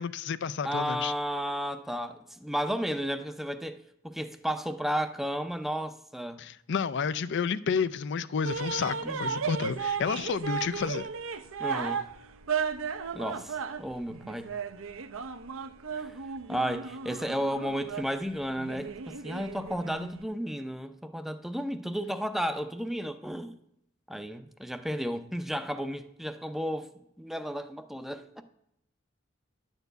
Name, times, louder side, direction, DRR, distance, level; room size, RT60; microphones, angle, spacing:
voice 1, 0.0-1.1 6.4-11.0, left 6 dB, 60° left, 0.4 m, -30 dB
voice 2, 0.6-6.4 9.0-9.4 11.6-12.1 13.1-14.5 15.9-16.2 16.5-23.6 24.1-26.9 27.2-28.4, equal, ahead, 0.5 m, -33 dB
sound 1, 8.4-20.2, right 6 dB, 85° right, 0.7 m, -35 dB
11.0 x 4.5 x 8.0 m
head